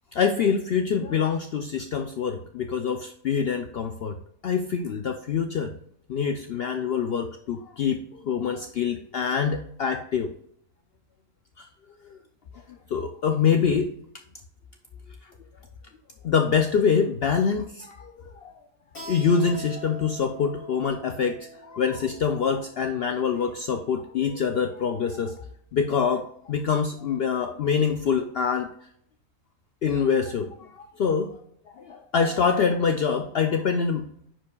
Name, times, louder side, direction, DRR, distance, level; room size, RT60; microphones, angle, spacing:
voice 1, 0.1-4.2 4.4-5.8 6.1-10.3 11.6-11.7 12.0-12.2 12.9-13.9 16.2-18.1 18.4-18.5 19.1-25.3 25.7-28.7 29.8-31.3 31.8-34.1, left 6 dB, 70° left, 6 dB, 0.6 m, -25 dB
Keyboard (musical), 19.0-24.2, right 3 dB, 40° left, 1.5 m, -45 dB
9.9 x 4.8 x 2.3 m, 0.68 s
omnidirectional pair, 1.5 m